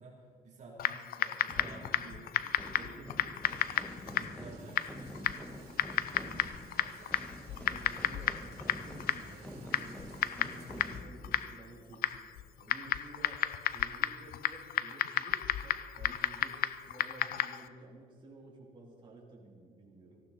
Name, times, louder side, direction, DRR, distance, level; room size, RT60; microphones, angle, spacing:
voice 1, 0.0-5.7 6.1-7.1, right 3 dB, 45° right, -4 dB, 3.2 m, -53 dB
Typing, 0.8-17.7, left 11 dB, 60° left, 0.6 m, -34 dB
sound 1, 1.5-12.9, equal, 5° left, 1.4 m, -48 dB
sound 2, 3.4-11.0, right 5 dB, 70° right, 2.7 m, -58 dB
voice 2, 7.4-10.1 10.5-12.1 12.6-20.2, right 2 dB, 30° right, -4 dB, 3.5 m, -53 dB
18.0 x 15.0 x 4.2 m, 2.1 s
cardioid pair, 110°, 17 cm